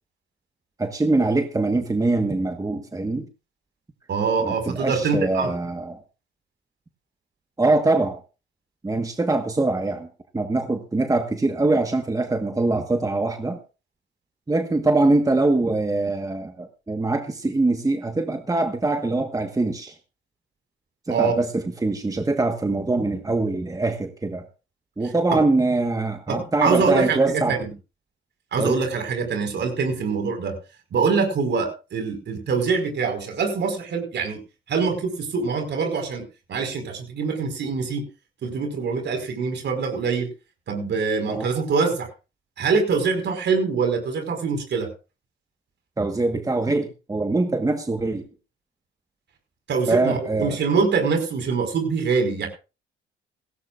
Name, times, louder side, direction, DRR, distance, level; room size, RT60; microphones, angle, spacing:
voice 1, 0.8-3.3 4.4-6.0 7.6-8.2 8.8-10.1 10.3-13.6 14.5-19.9 21.1-24.5 25.0-27.6 28.6-28.8 41.3-41.5 46.0-48.2 49.9-50.6, right 2 dB, 15° right, 6 dB, 1.4 m, -23 dB
voice 2, 4.1-5.5 21.1-21.4 26.3-27.6 28.5-30.5 30.9-34.4 34.7-38.0 38.4-40.3 40.7-42.1 42.6-44.9 49.7-52.5, right 5 dB, 60° right, 5 dB, 5.1 m, -24 dB
17.0 x 17.0 x 2.5 m, 0.32 s
cardioid pair, 90°, 20 cm